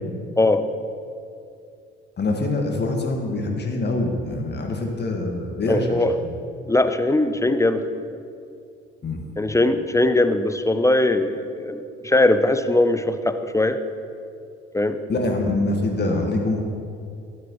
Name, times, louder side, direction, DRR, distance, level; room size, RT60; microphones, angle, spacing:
voice 1, 2.2-6.3 9.0-9.2 15.1-16.6, left 2 dB, 30° left, 2 dB, 1.7 m, -24 dB
voice 2, 5.7-6.1 6.7-8.0 9.4-13.8 14.7-15.0, left 2 dB, 10° left, 10 dB, 0.6 m, -20 dB
12.5 x 10.0 x 3.1 m, 2.4 s
figure-of-eight pair, 50°, 32 cm